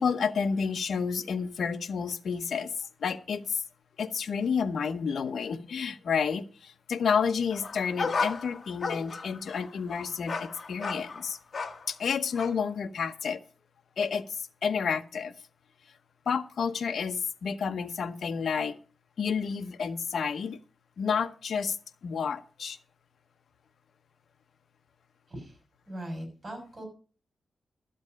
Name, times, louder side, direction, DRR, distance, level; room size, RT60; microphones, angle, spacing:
voice 1, 0.0-2.7 3.0-3.6 4.0-11.4 11.9-13.4 14.0-15.3 16.3-18.7 19.2-20.6 21.0-21.8 22.0-22.8, left 6 dB, 70° left, 0.9 m, -30 dB
sound 1, 7.5-11.9 12.3-12.5, left 4 dB, 45° left, 1.5 m, -34 dB
voice 2, 25.9-26.8, right 1 dB, 30° right, 6.2 m, -39 dB
12.5 x 7.9 x 5.2 m
wide cardioid pair, 130°, 0 cm